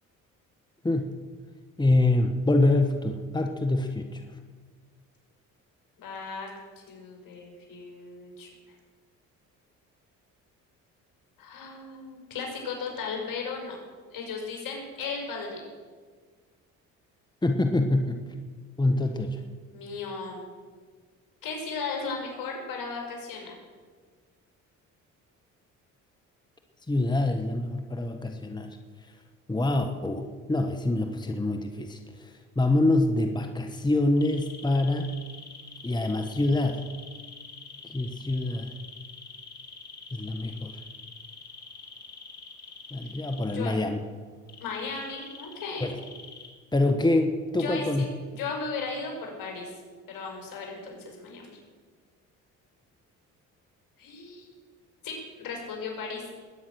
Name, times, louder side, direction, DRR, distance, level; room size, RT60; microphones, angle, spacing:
voice 1, 0.8-1.2 1.8-4.2 17.4-18.2 18.8-19.4 26.9-28.8 29.5-35.1 35.8-36.9 37.8-38.7 40.1-40.8 42.9-44.0 45.8-46.0 46.7-48.1, left 2 dB, 10° left, 5 dB, 1.4 m, -25 dB
voice 2, 6.0-6.5 6.9-8.5 11.4-13.8 14.1-15.6 19.7-20.4 21.4-23.5 43.5-43.7 44.6-45.9 47.6-49.7 50.1-51.6 54.0-54.5 55.0-56.2, left 4 dB, 65° left, 1 dB, 5.7 m, -36 dB
sound 1, 34.2-43.5 44.5-46.5, left 5 dB, 45° left, 3.2 m, -45 dB
21.0 x 9.6 x 6.3 m, 1.5 s
supercardioid pair, 70°, 35 cm